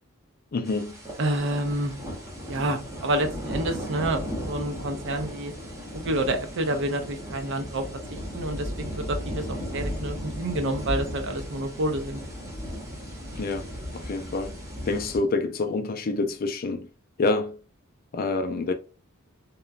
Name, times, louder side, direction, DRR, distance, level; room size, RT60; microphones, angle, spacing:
voice 1, 0.5-1.0 13.4-14.6 14.9-16.9 17.2-17.6 18.1-18.7, left 3 dB, 45° left, 0.4 m, -27 dB
sound 1, 0.6-15.2, equal, 15° right, 0.8 m, -36 dB
voice 2, 1.2-1.9 2.5-5.5 5.9-7.8 8.1-12.2, right 1 dB, 60° right, 0.6 m, -28 dB
2.9 x 2.3 x 2.4 m
head